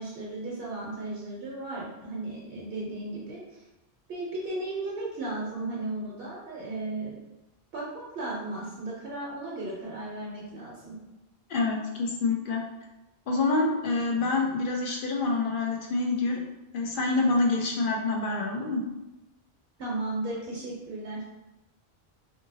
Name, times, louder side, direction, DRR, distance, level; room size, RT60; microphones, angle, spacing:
voice 1, 0.0-3.6 4.1-7.2 7.7-11.0 19.8-21.2, right 2 dB, 65° right, -5 dB, 0.9 m, -35 dB
voice 2, 11.5-12.6 13.3-16.4 16.7-18.8, left 3 dB, 60° left, 0 dB, 0.6 m, -27 dB
2.7 x 2.6 x 2.7 m, 0.98 s
omnidirectional pair, 1.1 m